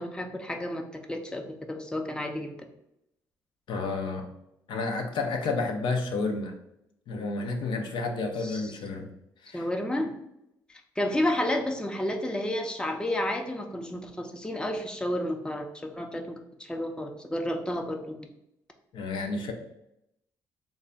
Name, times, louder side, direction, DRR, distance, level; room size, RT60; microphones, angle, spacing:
voice 1, 0.0-2.5 8.4-8.7 9.5-10.1 11.0-16.3 16.6-18.3, left 1 dB, 10° left, 3 dB, 0.6 m, -31 dB
voice 2, 3.7-4.3 4.7-6.5 7.1-9.1 9.4-9.7 18.9-19.5, left 3 dB, 70° left, 3 dB, 0.6 m, -30 dB
3.2 x 2.3 x 3.9 m, 0.82 s
supercardioid pair, 55°, 9 cm